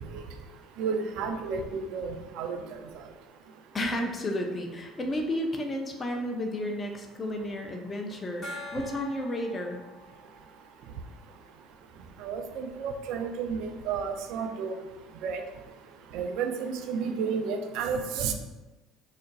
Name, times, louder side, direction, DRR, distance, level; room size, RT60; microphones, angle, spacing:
voice 1, 0.8-2.6 12.2-14.7 15.2-15.4 16.1-18.3, right 5 dB, 65° right, 6 dB, 0.3 m, -31 dB
voice 2, 3.7-9.8, left 1 dB, 30° left, 2 dB, 0.5 m, -32 dB
Gong, 8.4-11.7, left 1 dB, 45° left, 1.1 m, -44 dB
2.4 x 2.2 x 3.9 m, 1.2 s
hypercardioid pair, 60°, 0 cm